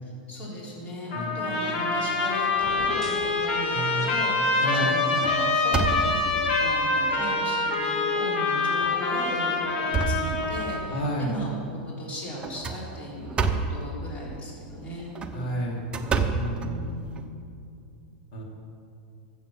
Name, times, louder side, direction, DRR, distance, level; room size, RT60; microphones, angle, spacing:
voice 1, 0.3-13.4 13.7-15.1 16.6-17.2, equal, 25° left, -5 dB, 3.8 m, -37 dB
Trumpet, 1.1-10.8, left 3 dB, 85° left, 2.9 m, -25 dB
voice 2, 1.1-1.5 3.7-4.1 4.6-5.0 10.9-11.3 15.3-15.8 16.3-16.8 18.3-18.4, right 1 dB, 60° left, -2 dB, 3.6 m, -31 dB
sound 1, 2.5-3.4, equal, 5° left, 1.2 m, -39 dB
sound 2, 3.2-3.8 4.3-4.5 4.9-6.5 7.1-7.2 7.7-7.8 8.7-9.0 9.4-10.9 12.4-13.9 15.0-17.2, right 4 dB, 20° right, 0.8 m, -29 dB
13.0 x 7.9 x 7.4 m, 2.5 s
supercardioid pair, 140°, 5 cm